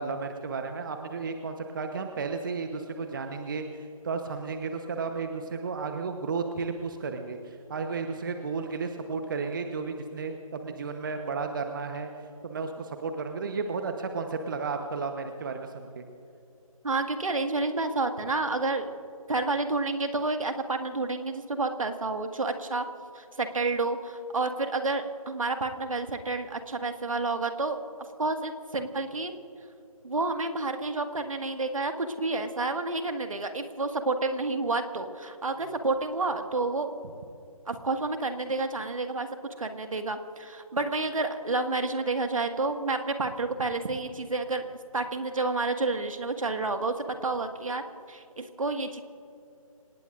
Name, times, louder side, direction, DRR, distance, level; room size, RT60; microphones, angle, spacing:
voice 1, 0.0-12.1 12.4-16.0, right 4 dB, 35° right, 6 dB, 1.0 m, -33 dB
voice 2, 16.8-18.9 19.3-22.8 23.2-27.8 28.2-29.3 30.0-36.9 37.7-39.3 39.6-44.7 44.9-47.8 48.1-49.0, right 3 dB, 65° right, 6 dB, 1.8 m, -29 dB
27.5 x 18.5 x 2.6 m, 2.7 s
figure-of-eight pair, 155°, 19 cm